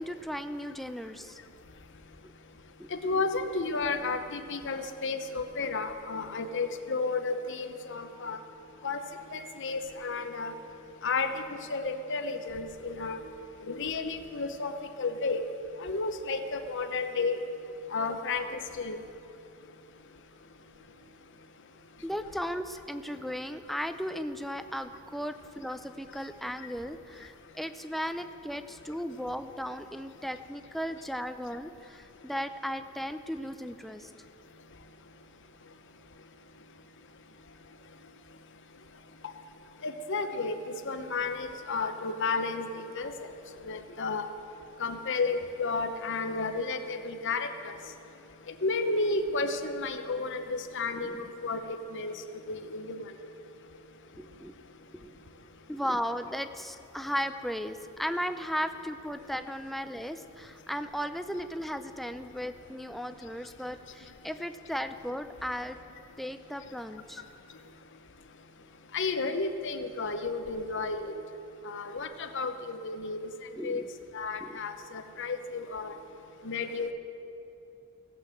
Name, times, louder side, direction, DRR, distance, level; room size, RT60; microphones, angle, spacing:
voice 1, 0.0-1.4 2.2-2.3 2.8-2.9 22.0-34.1 50.9-51.2 54.1-54.5 55.0-55.2 55.7-65.8 66.2-67.2 73.6-73.9 74.4-74.6, equal, ahead, 8 dB, 0.5 m, -36 dB
voice 2, 2.9-8.4 8.8-9.0 9.3-10.5 11.0-11.3 11.7-13.2 13.7-14.7 15.0-15.4 15.8-17.4 17.9-19.0 39.8-40.5 40.9-43.1 43.7-44.2 44.8-47.7 48.6-52.1 52.5-53.0 68.9-71.1 71.7-73.2 73.6-73.8 74.1-75.9 76.4-76.9, left 3 dB, 55° left, 7 dB, 0.9 m, -32 dB
17.0 x 7.9 x 7.7 m, 2.8 s
head